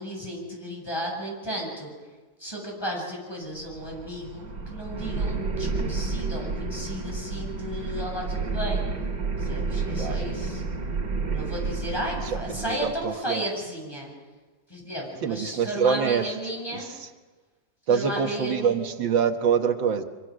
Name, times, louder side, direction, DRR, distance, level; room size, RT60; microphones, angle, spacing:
voice 1, 0.0-1.9 2.4-8.8 9.4-10.6 11.3-14.1 14.7-16.9 17.9-18.8, equal, 10° left, -2 dB, 7.3 m, -34 dB
sound 1, 3.5-13.1, right 4 dB, 65° right, 3.0 m, -30 dB
voice 2, 12.5-13.4 15.2-16.3 16.7-16.8 17.9-20.0, right 7 dB, 85° right, 6 dB, 2.0 m, -25 dB
25.0 x 24.0 x 6.3 m, 1.3 s
omnidirectional pair, 2.0 m